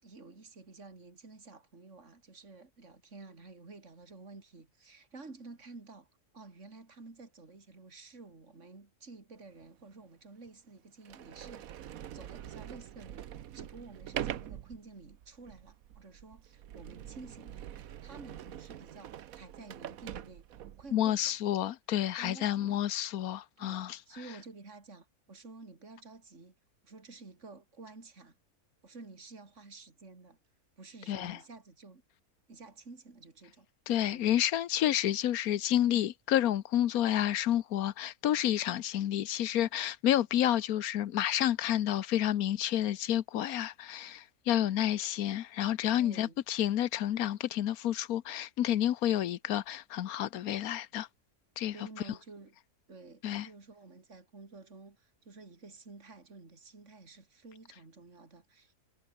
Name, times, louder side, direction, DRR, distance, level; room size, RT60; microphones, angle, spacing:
voice 1, 0.0-6.1 6.3-11.7 12.1-20.5 20.8-21.4 22.0-22.8 23.6-26.5 26.8-28.4 28.8-30.4 30.8-32.0 32.5-33.7 34.1-34.3 45.9-46.4 51.7-52.6 52.9-58.8, right 3 dB, 50° right, 3.7 m, -51 dB
Sliding door, 9.6-9.7 10.5-10.6 11.0-20.9, right 11 dB, 70° right, 1.3 m, -44 dB
voice 2, 20.9-24.0 31.1-31.4 33.9-51.1 51.6-51.7 53.2-53.5, left 11 dB, 75° left, 1.3 m, -30 dB
omnidirectional pair, 1.6 m